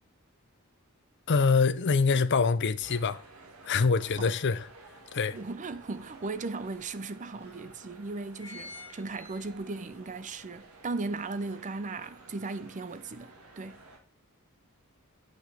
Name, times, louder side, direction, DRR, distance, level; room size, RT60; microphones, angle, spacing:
voice 1, 1.3-3.2 3.7-4.7 5.1-5.4, left 4 dB, 55° left, 0.6 m, -25 dB
sound 1, 2.8-14.0, right 2 dB, 75° right, 1.9 m, -53 dB
sound 2, 4.1-4.2 4.7-5.9 6.5-6.6 6.9-7.0 7.6-7.8 8.1-9.9 10.3-10.4, left 3 dB, 10° right, 4.7 m, -48 dB
voice 2, 5.3-13.8, right 3 dB, 35° right, 0.5 m, -37 dB
8.8 x 6.5 x 4.0 m
head